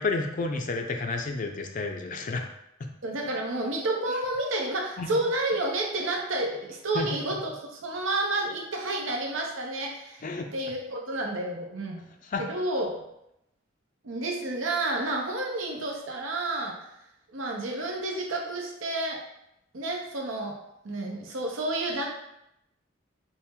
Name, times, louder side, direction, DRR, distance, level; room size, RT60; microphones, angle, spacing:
voice 1, 0.0-2.5 5.0-5.1 6.9-7.1 10.2-10.5 12.2-12.4, left 3 dB, 40° left, 5 dB, 0.4 m, -30 dB
voice 2, 3.0-10.3 10.5-12.0 12.4-12.9 14.0-16.8 17.3-19.2 19.7-20.6 20.8-22.1, right 2 dB, 85° right, 0 dB, 0.8 m, -30 dB
4.3 x 2.1 x 3.5 m, 0.82 s
head